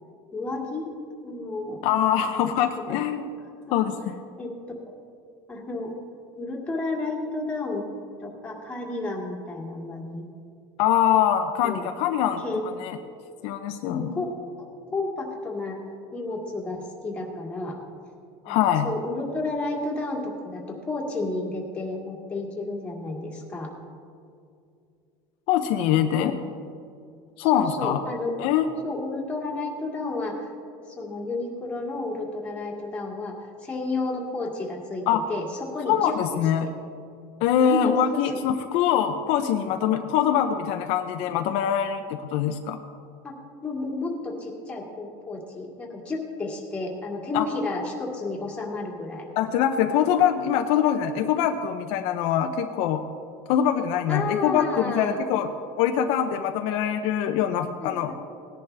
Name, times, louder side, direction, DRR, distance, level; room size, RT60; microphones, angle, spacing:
voice 1, 0.3-0.9 1.2-1.8 2.3-3.0 3.8-3.9 4.4-4.5 4.9-5.0 5.5-5.9 6.4-7.9 8.2-10.2 11.6-11.9 12.4-12.6 13.9-14.3 14.6-15.8 16.1-17.8 18.5-18.6 18.8-23.7 26.2-26.4 27.4-28.3 28.8-30.5 30.9-36.2 36.6-36.7 37.6-38.2 43.2-43.4 43.6-49.3 54.1-55.2 57.8-58.1, left 3 dB, 10° left, -2 dB, 2.0 m, -31 dB
voice 2, 1.8-3.2 3.7-4.1 10.8-12.4 12.8-13.0 13.4-14.2 18.5-18.9 25.5-26.4 27.4-28.0 28.4-28.7 35.1-35.2 35.9-36.7 37.4-42.8 47.3-47.4 49.4-53.0 53.5-55.5 55.8-58.1, left 9 dB, 60° left, 6 dB, 0.6 m, -23 dB
18.5 x 10.5 x 3.4 m, 2.4 s
cardioid pair, 160°, 12 cm